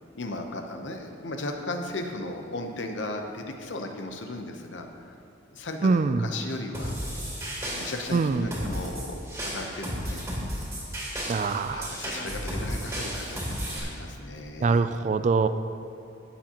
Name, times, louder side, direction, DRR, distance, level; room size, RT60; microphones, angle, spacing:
voice 1, 0.1-5.1 5.5-7.0 7.7-10.2 11.1-11.3 11.7-14.9, left 2 dB, 65° left, 4 dB, 0.9 m, -36 dB
voice 2, 5.8-6.3 8.1-8.5 11.3-11.9 14.6-15.5, right 4 dB, 40° right, 11 dB, 0.3 m, -24 dB
sound 1, 6.7-13.8, equal, 15° right, 2.4 m, -34 dB
17.0 x 7.2 x 3.0 m, 2.5 s
head